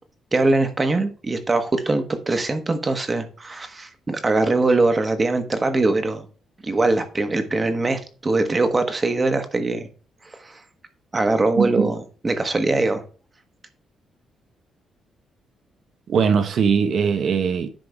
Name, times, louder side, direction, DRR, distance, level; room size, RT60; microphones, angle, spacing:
voice 1, 0.3-6.3 6.6-9.9 10.4-10.6 11.1-12.0 12.2-13.0, right 2 dB, 25° right, 1.3 m, -22 dB
voice 2, 11.6-11.9 16.1-17.7, right 6 dB, 60° right, 1.2 m, -20 dB
10.5 x 3.8 x 4.8 m
cardioid pair, 105°, 0 cm